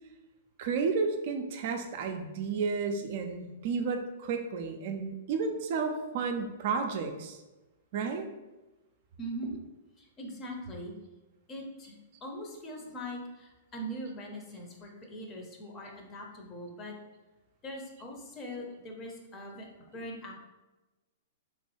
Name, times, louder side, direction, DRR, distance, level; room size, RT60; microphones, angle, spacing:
voice 1, 0.6-7.4 7.9-8.3, right 5 dB, 55° right, 5 dB, 0.3 m, -32 dB
voice 2, 9.2-9.6 10.0-10.9 11.5-17.0 17.6-20.3, equal, 25° left, 1 dB, 0.6 m, -41 dB
3.0 x 2.2 x 3.1 m, 1.1 s
hypercardioid pair, 110°, 0 cm